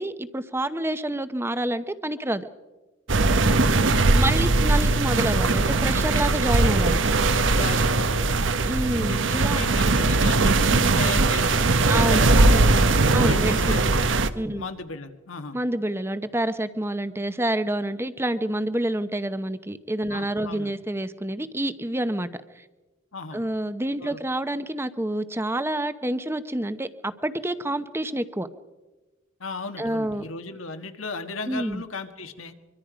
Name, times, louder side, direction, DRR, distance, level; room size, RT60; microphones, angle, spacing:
voice 1, 0.0-2.5 4.1-7.0 8.7-9.6 11.9-12.8 13.1-13.8 14.3-14.7 15.5-22.3 22.6-22.7 23.3-28.5 29.8-30.3 31.5-31.8, right 1 dB, 10° right, 12 dB, 0.8 m, -28 dB
sound 1, 3.1-14.3, right 3 dB, 70° right, 1.0 m, -20 dB
voice 2, 3.4-3.8 4.2-4.6 7.4-8.4 9.0-12.4 12.9-14.2 14.5-15.6 20.1-20.7 23.1-23.4 24.0-24.2 29.4-32.5, left 3 dB, 90° left, 7 dB, 1.6 m, -36 dB
24.5 x 24.0 x 5.1 m, 1.2 s
head